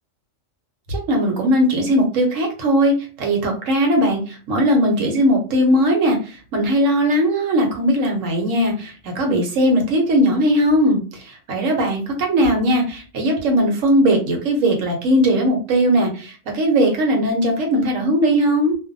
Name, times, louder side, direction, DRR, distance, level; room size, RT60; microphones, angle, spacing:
voice 1, 0.9-18.8, equal, 85° right, 1 dB, 1.2 m, -19 dB
2.5 x 2.2 x 2.5 m, 0.37 s
omnidirectional pair, 1.3 m